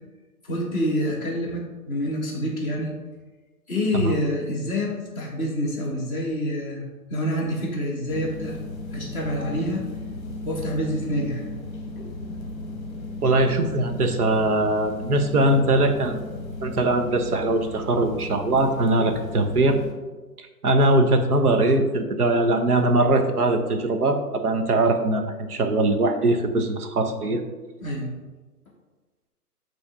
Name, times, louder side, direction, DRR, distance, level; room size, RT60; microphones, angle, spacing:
voice 1, 0.4-2.9 3.7-6.8 7.1-8.6 8.9-9.8 10.4-11.5 12.0-12.1 27.8-28.1, equal, 5° right, -8 dB, 0.5 m, -27 dB
sound 1, 8.1-19.9, left 2 dB, 15° left, 1.1 m, -35 dB
voice 2, 13.2-16.3 16.6-19.8 20.6-27.4, right 2 dB, 65° right, 6 dB, 1.1 m, -21 dB
6.3 x 3.4 x 5.7 m, 1.2 s
hypercardioid pair, 140°, 47 cm